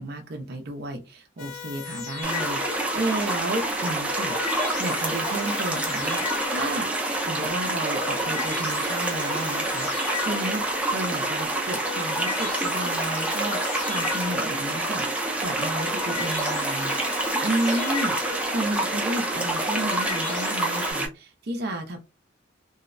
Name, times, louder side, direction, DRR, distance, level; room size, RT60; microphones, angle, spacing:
voice 1, 0.0-6.9 7.2-18.2 18.5-22.0, right 1 dB, 55° right, 0.6 m, -32 dB
sound 1, 1.4-3.1 3.8-7.0 7.7-10.9 11.6-14.8 15.5-18.7 19.4-20.9, left 8 dB, 85° left, 0.6 m, -36 dB
sound 2, 2.2-21.1, right 2 dB, 5° right, 0.5 m, -27 dB
2.7 x 2.0 x 2.5 m
head